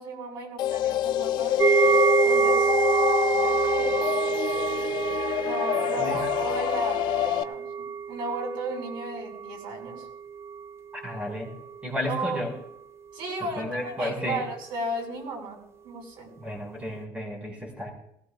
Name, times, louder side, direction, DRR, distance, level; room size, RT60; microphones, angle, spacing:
voice 1, 0.0-1.6 2.2-2.7 3.2-4.1 5.4-10.1 12.1-12.4 13.1-16.3, right 2 dB, 75° right, 0 dB, 5.7 m, -34 dB
sound 1, 0.6-7.4, left 12 dB, 60° left, 0.5 m, -27 dB
sound 2, 1.6-10.7 11.0-11.2 11.7-11.8, right 6 dB, 30° right, 0.4 m, -27 dB
voice 2, 11.0-11.5 11.8-12.5 13.6-14.4 16.4-17.9, left 1 dB, 15° right, 0 dB, 5.6 m, -32 dB
19.0 x 18.0 x 2.5 m, 0.76 s
cardioid pair, 140°, 8 cm